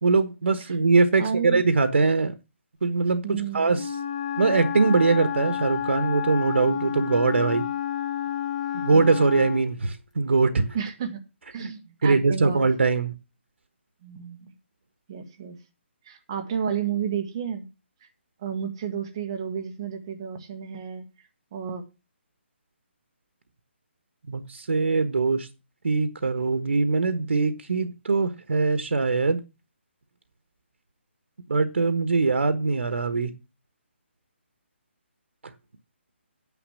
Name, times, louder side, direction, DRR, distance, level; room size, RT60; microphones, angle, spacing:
voice 1, 0.0-2.3 2.8-3.9 4.4-7.7 8.7-10.7 11.6-11.7 12.0-13.1 24.3-25.5 25.8-29.4 31.5-33.3, right 4 dB, 85° right, 1.2 m, -22 dB
voice 2, 1.2-1.6 3.2-3.8 10.7-11.2 11.5-12.6 14.0-14.5 15.1-15.6 16.0-17.7 18.4-21.0 21.5-21.8, right 7 dB, 20° right, 1.4 m, -32 dB
Wind instrument woodwind instrument, 3.7-9.7, left 10 dB, 35° left, 1.0 m, -30 dB
9.7 x 6.1 x 7.2 m
hypercardioid pair, 175°, 7 cm